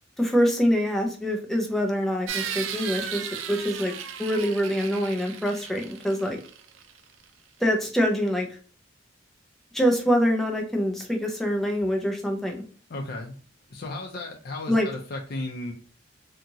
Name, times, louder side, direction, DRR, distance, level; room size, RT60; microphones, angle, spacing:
voice 1, 0.2-3.9 4.2-6.4 7.6-8.5 9.7-12.6 14.7-14.9, equal, ahead, 1 dB, 0.6 m, -25 dB
sound 1, 2.3-7.0, right 8 dB, 85° right, 0.4 m, -35 dB
voice 2, 12.9-13.4 13.7-15.7, left 2 dB, 55° left, 1 dB, 0.5 m, -34 dB
2.8 x 2.4 x 2.7 m, 0.40 s
head